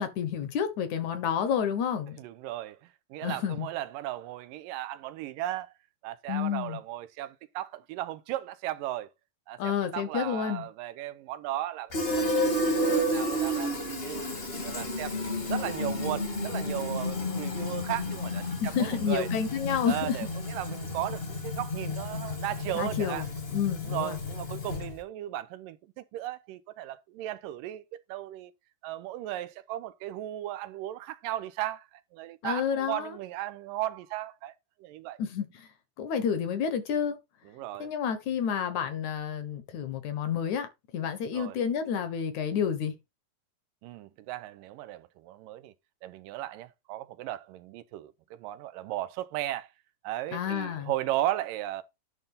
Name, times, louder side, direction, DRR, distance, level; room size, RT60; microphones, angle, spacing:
voice 1, 0.0-2.2 3.2-3.7 6.3-6.8 9.6-10.7 18.6-20.2 22.7-24.2 32.4-33.1 35.2-35.7 36.0-37.2 37.8-40.7 40.9-42.9 50.3-50.9, left 7 dB, 65° left, 2.3 m, -30 dB
voice 2, 2.2-5.7 6.0-9.1 9.5-14.3 14.6-19.3 19.9-23.3 23.9-28.5 28.8-34.5 34.8-35.2 37.5-37.9 41.3-41.6 43.8-45.7 46.0-49.7 50.0-51.8, right 14 dB, 85° right, 2.3 m, -36 dB
Fill (with liquid), 11.9-25.0, left 1 dB, 30° left, 1.2 m, -31 dB
11.0 x 3.8 x 5.5 m
omnidirectional pair, 4.0 m